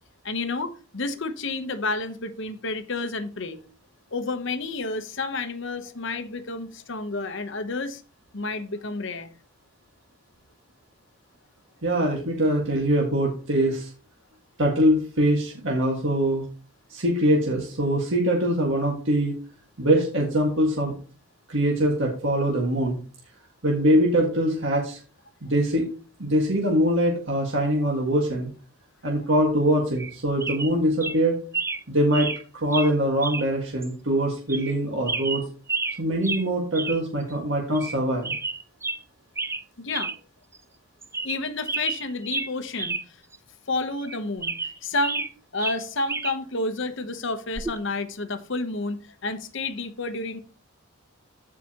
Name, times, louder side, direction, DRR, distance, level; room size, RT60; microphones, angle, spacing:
voice 1, 0.2-3.6 4.1-8.0 8.3-9.3 39.8-40.1 41.2-43.2 43.7-44.6 44.8-45.3 45.5-50.4, left 3 dB, 55° left, 0.9 m, -30 dB
voice 2, 11.8-13.9 14.6-16.4 16.9-19.3 19.8-20.9 21.5-23.0 23.6-25.0 25.4-25.9 26.2-28.5 29.0-31.4 31.9-32.3 32.5-35.4 36.0-38.3, right 1 dB, 60° right, 1.7 m, -23 dB
sound 1, 30.0-30.1 30.4-30.7 31.0-31.2 31.5-31.8 32.1-32.4 32.7-32.9 33.2-33.5 33.8-33.9 34.5-34.8 35.1-36.0 36.2-36.5 36.7-37.0 37.3-37.4 37.7-38.0 38.2-39.0 39.4-39.6 39.9-40.2 40.5-40.6 41.0-41.4 41.7-43.0 43.3-43.4 44.0-45.3 45.6-46.4 47.6-47.8, right 3 dB, 10° right, 0.4 m, -30 dB
15.0 x 4.9 x 2.9 m
head